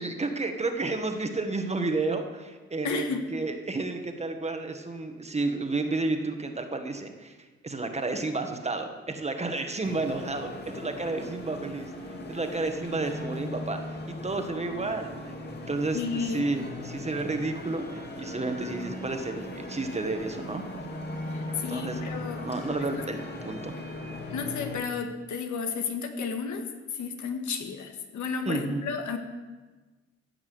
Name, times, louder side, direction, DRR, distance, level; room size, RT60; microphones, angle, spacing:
voice 1, 0.0-11.9 12.3-13.8 14.1-15.4 15.7-20.6 21.5-22.0 22.4-23.7 28.4-28.8, right 3 dB, 20° right, 6 dB, 1.6 m, -31 dB
voice 2, 2.8-3.3 15.9-16.5 21.3-22.4 22.9-23.0 24.3-26.6 26.9-29.2, left 5 dB, 75° left, 5 dB, 1.8 m, -32 dB
sound 1, 9.8-24.8, left 1 dB, 35° left, 2.4 m, -38 dB
15.5 x 6.0 x 7.9 m, 1.3 s
cardioid pair, 90°, 30 cm